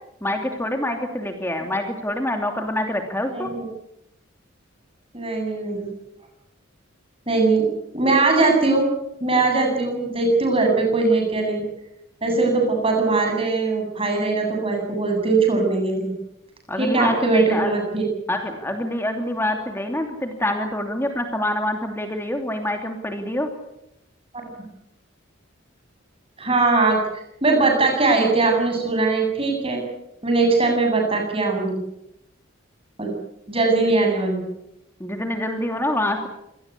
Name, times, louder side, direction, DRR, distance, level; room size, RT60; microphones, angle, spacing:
voice 1, 0.2-3.5 16.7-17.8 18.3-23.5 35.0-36.3, left 1 dB, 10° left, 4 dB, 2.8 m, -26 dB
voice 2, 3.3-3.6 5.1-5.9 7.3-7.6 7.9-8.9 9.2-11.6 12.2-16.1 16.8-18.1 26.4-27.0 27.4-29.8 30.2-31.8 33.0-33.1 33.5-34.5, right 3 dB, 25° right, 2 dB, 7.9 m, -20 dB
26.5 x 19.0 x 8.4 m, 0.83 s
head